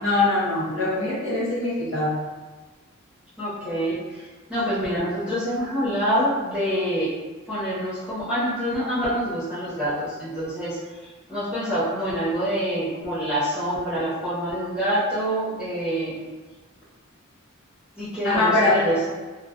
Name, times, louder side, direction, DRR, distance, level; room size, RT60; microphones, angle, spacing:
voice 1, 0.0-2.1 18.2-18.8, left 2 dB, 60° left, -8 dB, 0.8 m, -22 dB
voice 2, 3.4-7.1 7.5-10.8 11.3-16.2 18.0-19.1, equal, 5° right, -12 dB, 0.8 m, -26 dB
2.3 x 2.3 x 2.4 m, 1.3 s
head